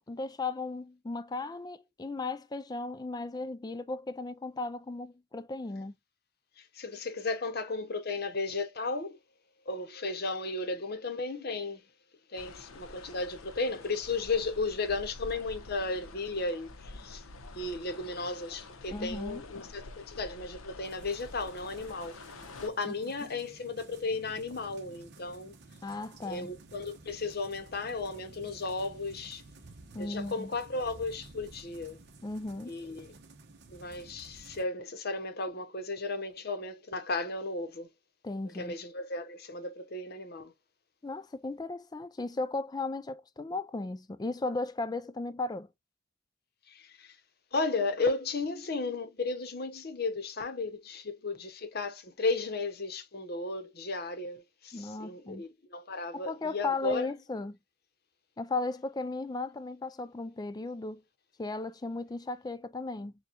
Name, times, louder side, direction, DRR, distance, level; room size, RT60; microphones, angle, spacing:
voice 1, 0.1-5.9 18.9-19.4 22.9-23.0 25.8-26.5 29.9-30.5 32.2-32.7 38.2-38.7 41.0-45.7 54.7-55.4 56.1-57.6 58.4-61.0 61.4-63.1, left 3 dB, 20° left, 0.3 m, -36 dB
voice 2, 6.6-9.2 9.7-11.8 12.3-17.2 17.5-22.2 22.6-25.5 26.2-29.4 30.0-32.0 32.7-33.1 33.7-37.9 38.5-40.5 46.7-47.2 47.5-57.1, left 3 dB, 50° left, 0.8 m, -34 dB
sound 1, 12.4-22.7, left 2 dB, 90° left, 0.8 m, -48 dB
sound 2, 20.8-34.7, right 2 dB, 55° right, 0.9 m, -53 dB
6.7 x 2.3 x 2.8 m
head